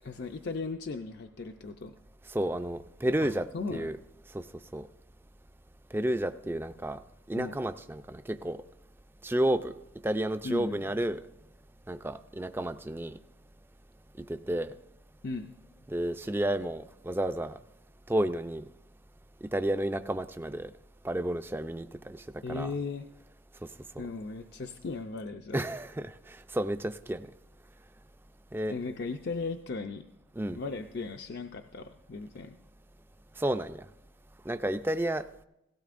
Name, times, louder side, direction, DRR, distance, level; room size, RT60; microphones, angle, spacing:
voice 1, 0.0-1.9 3.2-3.9 7.3-7.5 10.4-10.8 15.2-15.5 22.4-23.1 24.0-25.6 28.7-30.0 30.5-32.6, left 4 dB, 55° left, 5 dB, 0.5 m, -37 dB
voice 2, 2.3-4.0 4.3-4.4 4.7-4.9 5.9-7.0 7.3-8.6 9.2-9.7 10.0-11.2 11.9-13.1 14.3-14.7 15.9-17.6 18.1-18.6 19.5-20.7 21.0-22.2 22.5-22.7 25.5-27.3 28.5-28.7 30.4-30.6 33.4-33.9 34.5-35.2, right 1 dB, 10° right, 10 dB, 0.4 m, -31 dB
17.5 x 15.5 x 2.5 m, 0.87 s
head